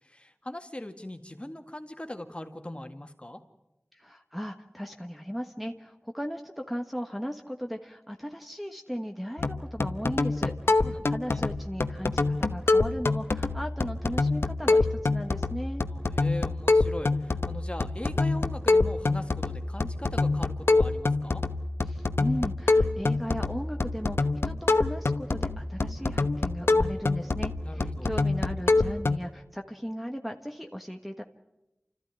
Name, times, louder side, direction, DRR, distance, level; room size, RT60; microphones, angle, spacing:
voice 1, 0.0-3.4 10.7-11.4 15.9-21.4 27.6-28.1, left 1 dB, 25° left, 6 dB, 2.0 m, -40 dB
voice 2, 3.9-15.8 21.9-31.2, equal, ahead, 3 dB, 1.3 m, -37 dB
sound 1, 9.4-29.2, left 3 dB, 80° left, 1.0 m, -26 dB
29.5 x 14.0 x 9.7 m, 0.97 s
wide cardioid pair, 50°, 4 cm